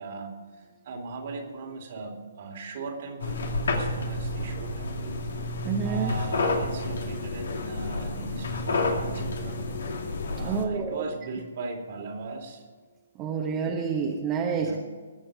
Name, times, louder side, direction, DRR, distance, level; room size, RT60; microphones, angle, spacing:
voice 1, 0.0-9.8 10.3-12.7 14.5-14.8, right 3 dB, 50° right, 3 dB, 2.7 m, -39 dB
sound 1, 3.2-10.6, left 2 dB, 75° left, 2.4 m, -30 dB
voice 2, 5.6-6.1 10.4-11.0 13.2-14.7, right 6 dB, 25° right, 0 dB, 1.3 m, -28 dB
20.5 x 7.5 x 4.9 m, 1.5 s
hypercardioid pair, 140°, 0 cm